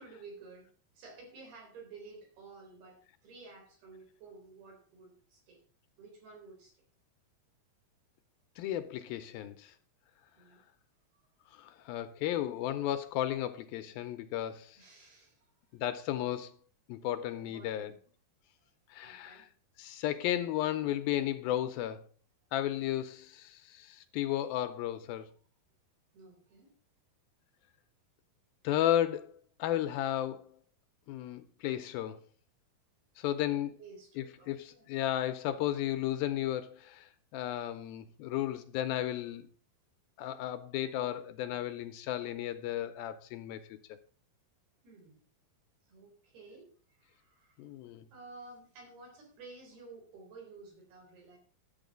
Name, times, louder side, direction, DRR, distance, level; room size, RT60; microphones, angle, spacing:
voice 1, 0.0-5.6 6.0-6.8 10.4-10.6 11.1-11.2 14.8-15.8 17.5-18.0 19.0-19.5 26.1-26.8 33.8-34.9 40.8-40.9 44.8-45.2 45.9-47.7 48.1-51.4, right 3 dB, 75° right, 5.8 m, -53 dB
voice 2, 8.6-9.7 11.5-14.8 15.7-16.5 16.9-17.9 18.9-19.5 19.8-22.0 22.5-25.3 28.6-30.5 31.1-32.2 33.2-33.8 34.2-39.5 40.2-43.6 47.6-48.1, left 12 dB, 80° left, 2.4 m, -34 dB
11.5 x 7.7 x 5.2 m
omnidirectional pair, 4.5 m